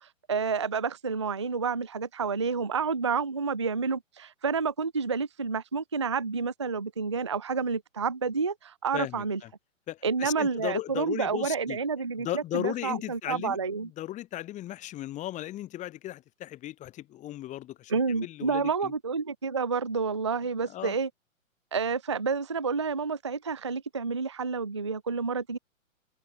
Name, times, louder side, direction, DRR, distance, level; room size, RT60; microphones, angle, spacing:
voice 1, 0.0-9.4 10.0-13.9 17.9-21.1 21.7-25.6, right 5 dB, 25° right, 0.3 m, -29 dB
voice 2, 8.9-9.2 9.9-11.8 12.2-13.6 14.0-17.9 18.2-18.9 20.7-20.9, left 14 dB, 20° left, 2.7 m, -36 dB
figure-of-eight pair, 125°, 40 cm